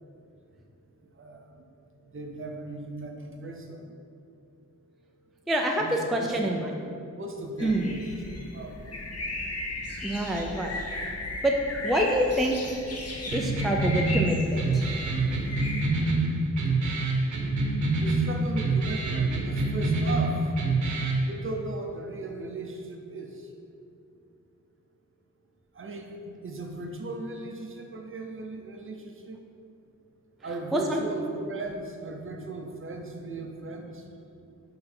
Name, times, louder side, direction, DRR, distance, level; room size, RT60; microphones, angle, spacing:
voice 1, 2.1-3.8 5.8-6.5 7.2-9.0 18.0-20.4 21.2-23.3 25.8-29.4 30.4-34.0, right 2 dB, 40° right, 2 dB, 0.6 m, -37 dB
voice 2, 5.5-6.8 7.6-7.9 10.0-10.7 11.4-11.5 11.8-12.8 13.2-14.8 30.7-31.0, right 1 dB, ahead, 1 dB, 0.3 m, -26 dB
sound 1, 7.6-15.9, left 2 dB, 50° left, 0.8 m, -36 dB
sound 2, 13.3-21.3, right 2 dB, 65° right, 0.9 m, -26 dB
5.9 x 3.8 x 4.3 m, 2.6 s
wide cardioid pair, 120°, 32 cm